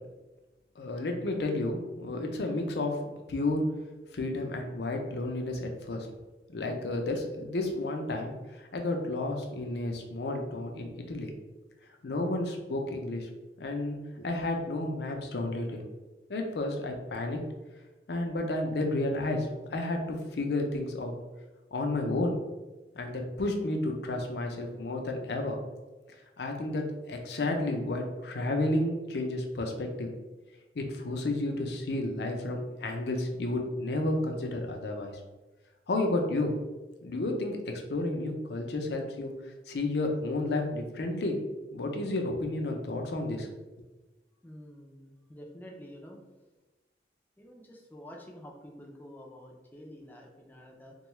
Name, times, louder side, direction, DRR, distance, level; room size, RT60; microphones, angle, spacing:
voice 1, 0.8-3.0 3.3-3.6 4.1-6.1 6.5-11.3 12.0-13.3 13.6-15.8 16.3-17.4 18.1-21.1 21.7-22.4 23.0-25.6 26.4-30.1 30.8-35.1 35.9-36.5 37.0-39.3 39.7-41.4 41.7-43.5 43.8-43.9, left 2 dB, 75° left, 3 dB, 0.5 m, -31 dB
voice 2, 44.4-46.2 47.4-51.0, equal, 10° left, 0 dB, 0.4 m, -48 dB
3.6 x 2.3 x 3.0 m, 1.1 s
head